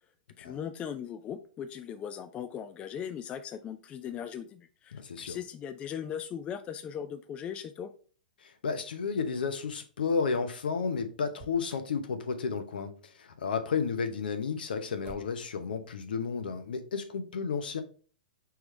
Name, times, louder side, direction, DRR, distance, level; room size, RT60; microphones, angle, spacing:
voice 1, 0.4-7.9, left 8 dB, 25° left, 10 dB, 0.4 m, -39 dB
voice 2, 4.9-5.4 8.4-17.8, left 5 dB, 75° left, 8 dB, 0.8 m, -32 dB
Motor vehicle (road), 11.3-12.0 15.0-15.6, right 5 dB, 30° right, 1.2 m, -51 dB
4.8 x 3.5 x 3.1 m, 0.40 s
hypercardioid pair, 125°, 5 cm